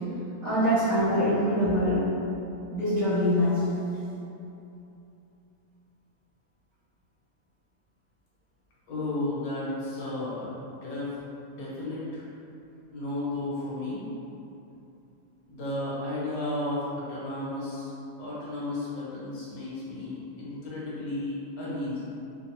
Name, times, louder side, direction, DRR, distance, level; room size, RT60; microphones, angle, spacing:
voice 1, 0.4-2.0 2.7-3.8, equal, 65° right, -15 dB, 1.9 m, -24 dB
voice 2, 8.9-11.2 11.5-12.2 12.9-14.0 15.5-17.9 18.2-22.0, left 2 dB, 60° left, -8 dB, 1.2 m, -33 dB
4.5 x 2.5 x 2.9 m, 2.8 s
omnidirectional pair, 1.9 m